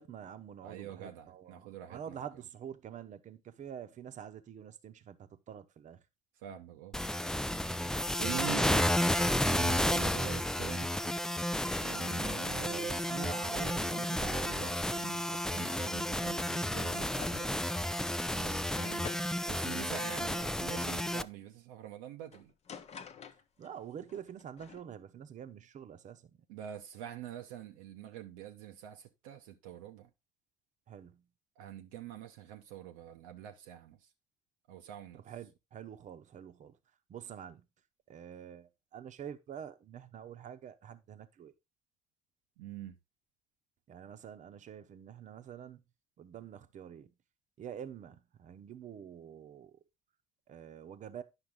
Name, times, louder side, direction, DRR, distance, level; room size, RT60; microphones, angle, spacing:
voice 1, 0.0-6.0 8.3-8.8 11.9-12.2 18.4-18.7 23.6-26.3 30.9-31.2 35.2-36.8 37.1-37.6 38.1-41.5 43.9-45.8 46.2-47.1 47.6-49.8 50.5-51.2, right 9 dB, 45° right, 0.9 m, -47 dB
voice 2, 0.6-2.2 6.4-6.9 8.2-8.9 9.3-11.1 11.8-17.6 18.8-19.1 19.5-22.5 26.5-30.1 31.6-34.0 34.7-35.2 42.6-42.9, right 11 dB, 70° right, 0.7 m, -45 dB
sound 1, 6.9-21.2, left 1 dB, 5° left, 0.4 m, -32 dB
sound 2, 16.8-17.0 17.2-17.5 18.0-18.2 18.7-21.0 22.3-23.8 24.1-24.8, left 7 dB, 35° left, 0.8 m, -49 dB
9.9 x 5.8 x 3.5 m
hypercardioid pair, 55°, 18 cm